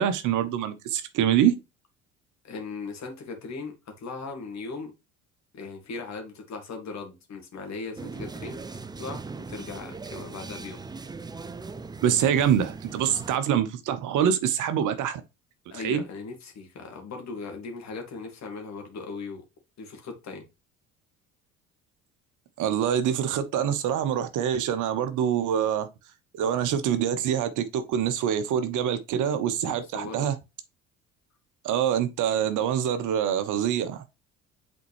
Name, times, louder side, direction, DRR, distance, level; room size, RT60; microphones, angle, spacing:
voice 1, 0.0-1.5 12.0-15.2 15.7-16.0 22.6-25.9 26.3-30.4 31.6-34.0, right 9 dB, 50° right, 1.0 m, -25 dB
voice 2, 2.4-4.9 5.5-8.6 9.0-10.8 15.7-19.4 19.8-20.4 29.9-30.3, left 4 dB, 40° left, 2.3 m, -38 dB
sound 1, 8.0-13.4, right 4 dB, 10° right, 0.5 m, -39 dB
8.3 x 4.4 x 3.3 m
figure-of-eight pair, 55°, 41 cm